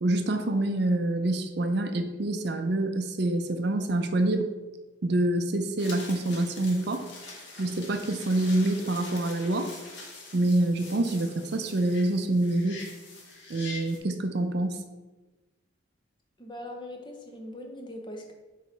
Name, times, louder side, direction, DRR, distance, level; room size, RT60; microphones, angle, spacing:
voice 1, 0.0-4.5 5.0-7.1 7.6-9.7 10.3-12.8 13.5-14.8, right 2 dB, 55° right, 7 dB, 0.5 m, -26 dB
sound 1, 5.8-14.0, left 3 dB, 65° left, 1.4 m, -44 dB
voice 2, 16.4-18.3, left 1 dB, 25° left, 2 dB, 0.7 m, -41 dB
4.6 x 4.1 x 5.2 m, 1.2 s
head